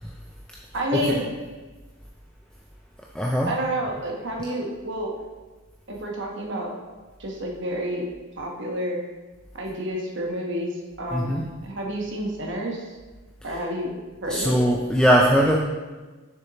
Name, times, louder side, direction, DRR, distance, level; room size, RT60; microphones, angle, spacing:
voice 1, 0.7-1.3 3.5-5.1 5.9-6.7 7.2-8.0 8.4-9.0 9.5-11.3 11.6-12.8 13.4-13.9 14.2-14.6, right 1 dB, 55° right, 0 dB, 1.1 m, -29 dB
voice 2, 3.1-3.5 11.1-11.5 13.5-13.6 14.3-15.6, equal, 5° left, -2 dB, 0.4 m, -21 dB
6.9 x 6.6 x 2.9 m, 1.3 s
head